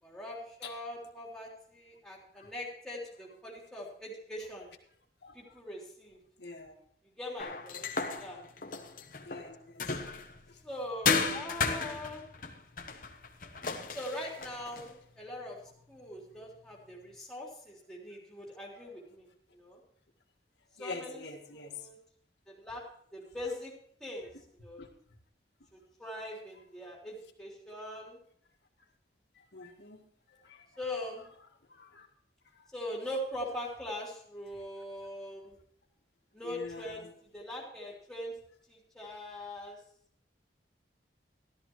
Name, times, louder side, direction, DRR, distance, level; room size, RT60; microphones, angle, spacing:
voice 1, 0.0-4.7 5.3-6.2 7.2-8.4 10.6-12.2 13.9-15.6 15.9-19.3 19.5-19.8 20.8-21.2 21.5-22.0 22.5-22.8 23.1-23.7 24.0-24.3 24.6-24.8 25.7-28.2 30.8-31.3 32.7-35.5 36.3-38.3 38.7-39.8, left 1 dB, 5° left, -3 dB, 3.4 m, -42 dB
voice 2, 6.4-6.7 8.4-8.5 9.3-9.9 10.5-10.6 18.8-18.9 20.8-21.8 24.8-24.9 29.4-30.0 30.4-30.7 31.7-32.1 36.4-37.1, left 3 dB, 75° left, 2 dB, 1.8 m, -45 dB
sound 1, 7.4-10.4 11.1-14.9, left 5 dB, 50° left, 1.0 m, -34 dB
13.5 x 13.0 x 3.1 m, 0.63 s
head